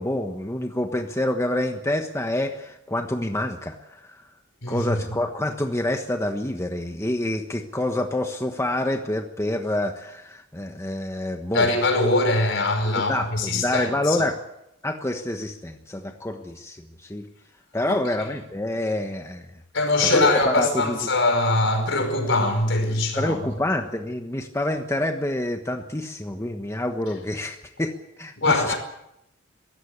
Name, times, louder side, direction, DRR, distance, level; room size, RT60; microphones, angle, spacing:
voice 1, 0.0-4.2 4.7-11.7 13.0-14.3 14.8-17.3 17.7-19.5 20.0-21.0 23.2-28.7, left 1 dB, 15° left, 1.2 m, -27 dB
voice 2, 4.6-5.1 11.5-14.2 17.9-18.0 19.7-23.6 28.4-28.8, left 2 dB, 65° left, 5.3 m, -22 dB
22.0 x 16.5 x 8.3 m
head